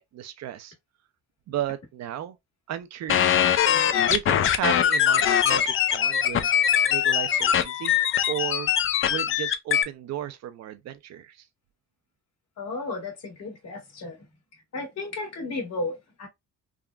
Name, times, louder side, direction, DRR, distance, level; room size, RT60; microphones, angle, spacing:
voice 1, 0.1-0.7 1.5-2.4 2.7-3.5 4.1-6.5 6.9-8.0 8.3-8.7 9.1-11.4, right 11 dB, 60° right, 0.5 m, -34 dB
sound 1, 3.1-9.8, left 9 dB, 45° left, 0.4 m, -22 dB
voice 2, 12.6-14.2 14.7-16.3, left 2 dB, 60° left, 1.6 m, -33 dB
3.6 x 2.1 x 2.3 m
cardioid pair, 120°, 29 cm